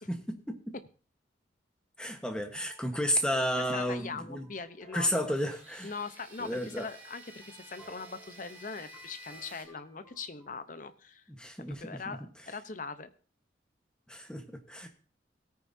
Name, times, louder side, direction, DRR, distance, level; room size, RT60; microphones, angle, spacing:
voice 1, 0.1-0.7 2.0-4.4 4.9-5.9 6.4-6.9 11.3-12.2 14.1-14.9, equal, 5° left, 5 dB, 1.2 m, -32 dB
sound 1, 2.5-10.5, right 1 dB, 20° left, 5.4 m, -59 dB
voice 2, 3.6-5.3 5.8-11.2 11.7-13.1, left 4 dB, 45° left, 12 dB, 0.8 m, -41 dB
sound 2, 5.2-9.7, right 1 dB, 10° right, 2.8 m, -52 dB
17.5 x 9.3 x 2.7 m, 0.38 s
head